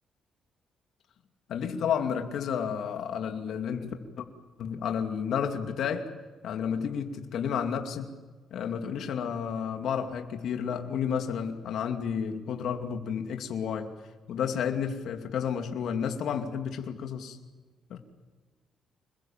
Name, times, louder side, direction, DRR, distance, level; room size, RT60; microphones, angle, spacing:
voice 1, 1.5-4.3 4.6-6.1 6.4-8.1 8.5-13.9 14.3-17.4 17.9-18.0, left 7 dB, 75° left, 4 dB, 2.6 m, -31 dB
27.0 x 21.5 x 7.4 m, 1.3 s
cardioid pair, 90°, 0 cm